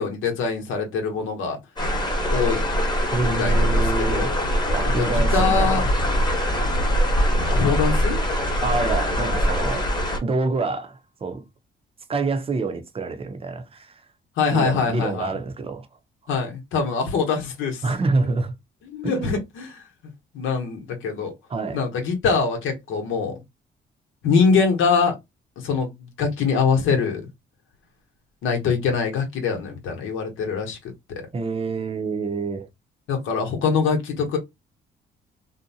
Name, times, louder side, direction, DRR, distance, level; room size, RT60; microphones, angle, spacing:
voice 1, 0.0-1.6 2.3-2.6 3.4-4.4 5.0-5.8 7.5-8.2 14.4-15.3 16.3-17.8 18.9-19.7 20.3-21.3 21.7-23.3 24.2-25.1 25.6-27.2 28.4-30.8 33.1-34.4, left 5 dB, 90° left, 0.9 m, -23 dB
sound 1, 1.8-10.2, equal, 20° left, 1.0 m, -22 dB
voice 2, 3.1-4.3 4.7-5.9 8.6-9.9 10.2-11.4 12.1-14.0 14.5-15.9 17.8-18.5 19.0-19.4 21.5-21.8 31.3-32.7, right 3 dB, 30° right, 0.6 m, -27 dB
2.6 x 2.1 x 2.6 m
cardioid pair, 90°, 20 cm